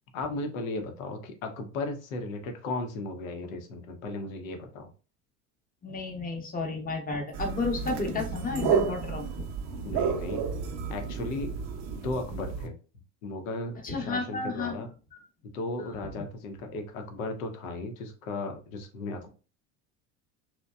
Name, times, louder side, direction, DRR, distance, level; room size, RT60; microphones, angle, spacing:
voice 1, 0.1-4.9 9.8-10.4 10.9-11.6 11.9-12.7 13.2-13.8 14.1-14.9 15.5-19.3, left 2 dB, 85° left, 5 dB, 0.7 m, -35 dB
voice 2, 5.8-10.0 13.8-14.7 15.1-15.2, left 3 dB, 20° left, 3 dB, 0.8 m, -32 dB
sound 1, 7.3-12.7, right 6 dB, 45° right, 0.5 m, -31 dB
2.8 x 2.1 x 2.2 m, 0.35 s
hypercardioid pair, 85°, 40 cm